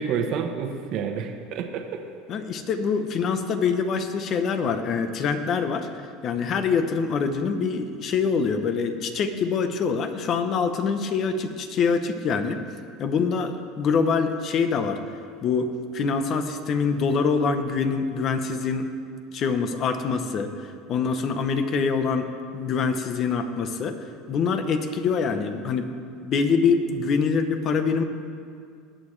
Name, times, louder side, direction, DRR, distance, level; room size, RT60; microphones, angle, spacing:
voice 1, 0.0-2.0, right 6 dB, 55° right, 4 dB, 1.1 m, -29 dB
voice 2, 2.3-5.9 6.2-12.6 13.0-15.0 15.4-18.9 19.3-22.3 22.5-24.0 24.3-25.9 26.2-28.0, left 5 dB, 40° left, 8 dB, 0.9 m, -25 dB
20.5 x 8.8 x 3.3 m, 2.2 s
supercardioid pair, 135°, 0 cm